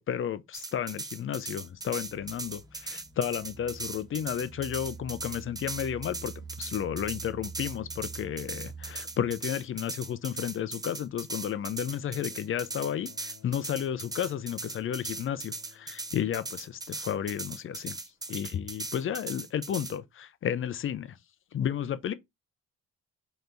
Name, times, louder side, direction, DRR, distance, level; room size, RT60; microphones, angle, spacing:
voice 1, 0.0-18.0 18.3-21.2 21.5-22.1, left 9 dB, 45° left, 0.5 m, -32 dB
sound 1, 0.5-20.0, right 2 dB, 15° right, 0.7 m, -39 dB
sound 2, 1.7-9.5, right 5 dB, 5° left, 1.2 m, -46 dB
Bowed string instrument, 11.6-17.1 18.2-18.3, left 9 dB, 70° left, 1.1 m, -57 dB
3.3 x 3.0 x 3.9 m
cardioid pair, 90°, 30 cm